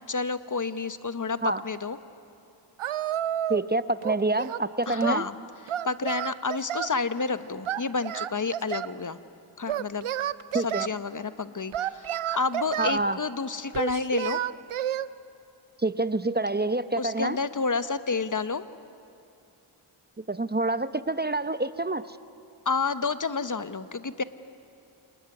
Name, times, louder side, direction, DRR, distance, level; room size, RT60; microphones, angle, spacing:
voice 1, 0.1-1.4 1.6-2.0 4.9-5.3 5.8-9.2 9.6-10.1 10.5-14.4 17.0-18.6 22.6-24.2, left 4 dB, 40° left, 12 dB, 1.1 m, -30 dB
Singing, 2.8-3.7 4.0-5.2 5.7-7.0 7.7-9.0 9.7-10.9 11.7-13.0 13.7-15.1, right 11 dB, 80° right, 0.6 m, -30 dB
voice 2, 3.5-5.2 10.5-10.9 12.8-13.2 15.8-17.4 20.3-22.2, right 2 dB, 20° right, 13 dB, 0.8 m, -27 dB
28.0 x 19.0 x 9.7 m, 2.6 s
cardioid pair, 40°, 49 cm